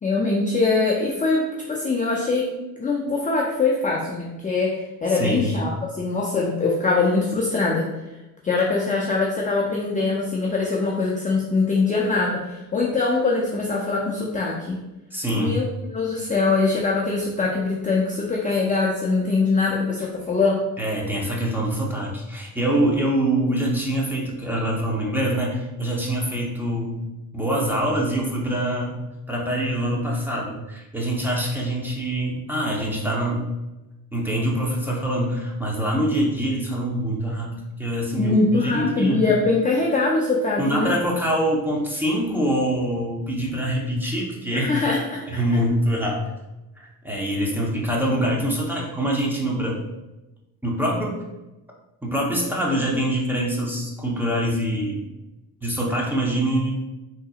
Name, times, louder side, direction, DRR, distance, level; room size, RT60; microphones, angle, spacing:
voice 1, 0.0-2.5 2.8-7.9 8.4-14.8 15.3-20.6 38.2-40.9 44.5-45.2, left 3 dB, 20° left, -2 dB, 0.4 m, -22 dB
voice 2, 5.1-5.5 15.1-15.6 20.8-27.1 27.3-29.0 29.3-33.4 34.1-39.3 40.6-44.7 45.3-46.2 46.8-49.8 50.6-51.2 52.0-55.0 55.6-56.7, right 1 dB, 5° right, -3 dB, 0.8 m, -24 dB
3.8 x 2.8 x 2.3 m, 1.0 s
cardioid pair, 90°, 40 cm